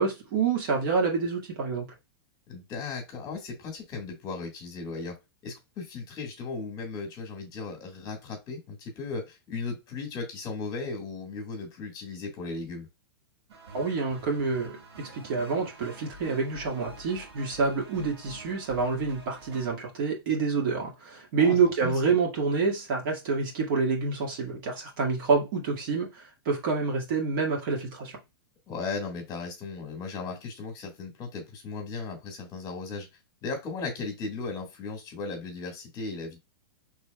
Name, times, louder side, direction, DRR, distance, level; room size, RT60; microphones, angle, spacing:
voice 1, 0.0-1.9 13.7-28.2, right 5 dB, 55° right, 1.8 m, -27 dB
voice 2, 2.5-5.1 5.4-12.9 21.4-21.9 28.7-33.1 33.4-36.4, left 4 dB, 30° left, 1.5 m, -36 dB
sound 1, 13.5-19.7, right 2 dB, 85° right, 1.6 m, -47 dB
4.7 x 3.4 x 2.2 m
hypercardioid pair, 140°, 13 cm